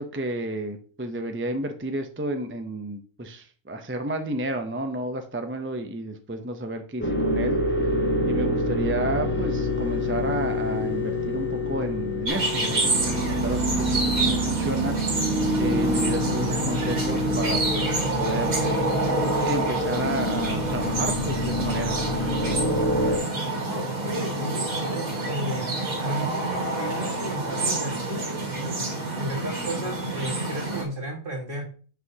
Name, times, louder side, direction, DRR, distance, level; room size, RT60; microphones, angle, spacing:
voice 1, 0.0-7.6 8.2-15.0 15.6-18.7 19.4-22.0, right 1 dB, 15° right, 6 dB, 0.4 m, -31 dB
sound 1, 7.0-23.2, left 1 dB, 10° left, 1.0 m, -27 dB
sound 2, 12.3-30.8, right 2 dB, 90° right, 2.3 m, -28 dB
voice 2, 23.5-25.7 26.0-28.8 29.2-31.6, right 1 dB, 40° right, 0 dB, 2.1 m, -34 dB
9.5 x 5.9 x 2.8 m, 0.40 s
omnidirectional pair, 1.4 m